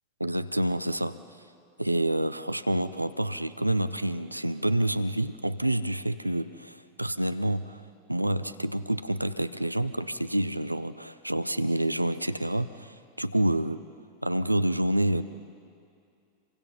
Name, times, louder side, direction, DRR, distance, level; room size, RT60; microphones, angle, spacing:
voice 1, 0.2-1.2 1.8-13.8 14.2-15.2, right 1 dB, 85° right, 13 dB, 0.6 m, -28 dB
28.5 x 24.0 x 5.5 m, 2.4 s
figure-of-eight pair, 90°, 0 cm